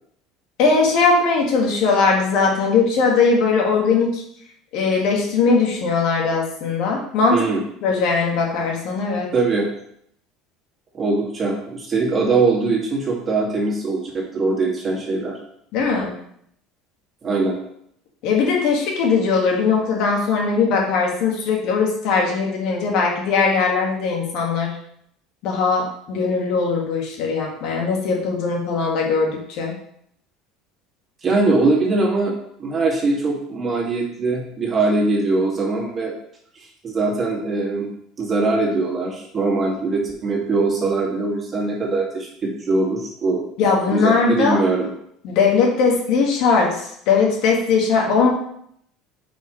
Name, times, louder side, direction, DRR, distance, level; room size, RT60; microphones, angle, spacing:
voice 1, 0.6-4.2 4.7-7.5 7.8-9.3 15.7-16.1 18.2-24.7 25.4-29.7 43.6-44.6 45.2-48.3, left 4 dB, 65° left, 0 dB, 2.1 m, -19 dB
voice 2, 9.3-9.7 10.9-15.4 17.2-17.6 31.2-32.3 32.6-36.1 36.8-37.9 38.2-43.4 43.9-44.9, right 3 dB, 30° right, -2 dB, 2.4 m, -21 dB
8.4 x 5.4 x 3.3 m, 0.69 s
supercardioid pair, 125°, 0 cm